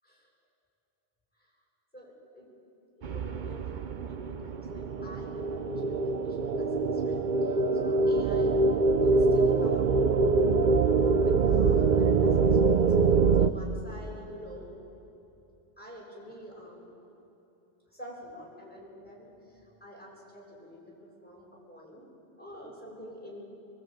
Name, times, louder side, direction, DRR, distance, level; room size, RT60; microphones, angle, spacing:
voice 1, 1.9-2.5 3.0-8.6 9.1-9.8 11.0-12.8 13.4-14.7 15.8-16.9 17.9-19.3 19.8-20.9 21.2-22.1 22.4-23.4, equal, 10° left, -4 dB, 7.1 m, -46 dB
sound 1, 3.0-13.5, right 4 dB, 50° right, 0.8 m, -24 dB
22.0 x 21.5 x 9.0 m, 2.9 s
omnidirectional pair, 1.2 m